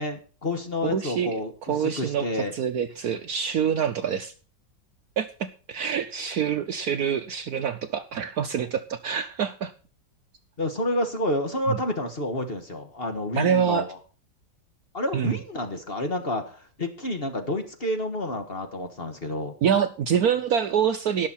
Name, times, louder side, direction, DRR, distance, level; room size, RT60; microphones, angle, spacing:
voice 1, 0.0-2.5 10.6-14.0 14.9-19.5, left 1 dB, 35° left, 6 dB, 1.5 m, -29 dB
voice 2, 0.8-1.3 1.7-4.3 5.2-9.7 11.7-11.8 13.3-13.9 15.1-15.4 19.6-21.3, right 8 dB, 65° right, 9 dB, 1.0 m, -26 dB
18.5 x 6.4 x 4.3 m, 0.38 s
omnidirectional pair, 2.0 m